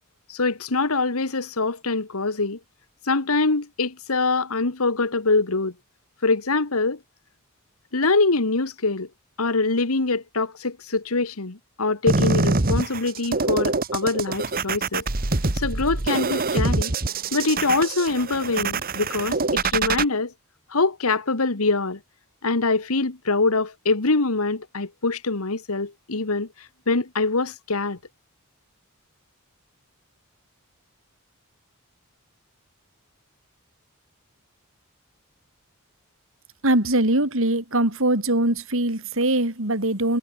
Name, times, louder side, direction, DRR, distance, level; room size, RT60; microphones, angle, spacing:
voice 1, 0.3-2.6 3.1-5.7 6.2-7.0 7.9-9.1 9.4-15.1 15.5-16.9 17.3-20.3 20.7-22.0 22.4-28.0, left 3 dB, 75° left, 1.6 m, -24 dB
sound 1, 12.1-20.0, right 3 dB, 40° right, 1.5 m, -25 dB
voice 2, 36.6-40.2, right 1 dB, 60° right, 4.3 m, -22 dB
head